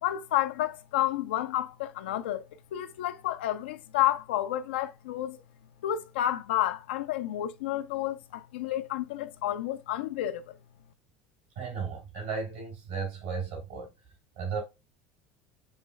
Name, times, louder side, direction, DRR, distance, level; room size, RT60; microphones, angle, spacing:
voice 1, 0.0-2.4 2.7-5.4 5.8-10.5, left 13 dB, 85° left, 0.6 m, -30 dB
voice 2, 11.6-13.9 14.4-14.6, right 5 dB, 85° right, 3.3 m, -34 dB
7.2 x 3.1 x 2.3 m
supercardioid pair, 100°, 6 cm